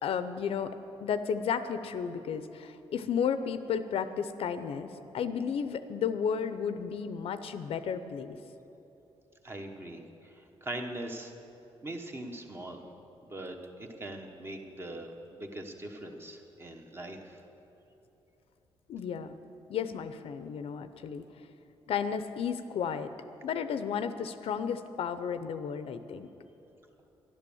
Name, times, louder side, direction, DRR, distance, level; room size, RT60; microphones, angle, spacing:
voice 1, 0.0-4.9 5.1-8.4 18.9-19.4 19.7-21.2 21.9-23.1 23.4-26.3, left 7 dB, 70° left, 11 dB, 0.6 m, -33 dB
voice 2, 9.4-11.3 11.8-12.8 13.3-17.4, right 1 dB, 25° right, 3 dB, 1.1 m, -41 dB
12.5 x 11.5 x 7.1 m, 3.0 s
wide cardioid pair, 165°, 10 cm